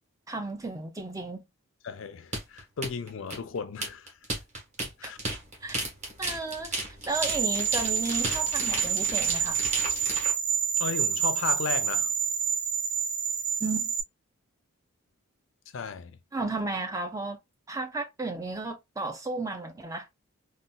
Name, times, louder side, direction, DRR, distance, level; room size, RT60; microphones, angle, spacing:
voice 1, 0.3-1.4 5.0-5.1 5.6-5.8 6.2-6.8 7.1-9.6 13.6-13.9 16.3-17.4 17.7-20.1, right 3 dB, 15° right, 0.5 m, -33 dB
voice 2, 1.8-4.1 4.8-5.2 10.8-12.1 15.7-16.2, left 6 dB, 65° left, 0.5 m, -35 dB
sound 1, 2.3-10.3, right 2 dB, 35° right, 1.2 m, -34 dB
sound 2, 7.1-14.0, right 7 dB, 70° right, 0.7 m, -28 dB
3.9 x 2.3 x 2.2 m
head